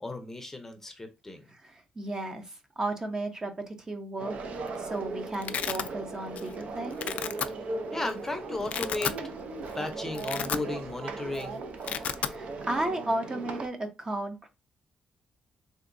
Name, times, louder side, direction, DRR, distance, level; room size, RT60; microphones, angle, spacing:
voice 1, 0.0-1.5 7.9-9.1 9.7-11.6, left 2 dB, 15° left, 0.6 m, -35 dB
voice 2, 1.5-4.4 4.8-7.0 12.2-14.5, right 2 dB, 25° right, 0.7 m, -34 dB
sound 1, 4.2-13.7, right 3 dB, 65° right, 0.5 m, -38 dB
Domestic sounds home sounds, 4.4-4.8 5.0-5.9 6.4-6.6 6.9-7.5 8.1-8.2 8.6-9.2 9.6-9.7 10.1-11.0 11.3-11.4 11.7-12.4, left 8 dB, 65° left, 0.3 m, -33 dB
3.4 x 2.8 x 2.5 m
cardioid pair, 115°, 3 cm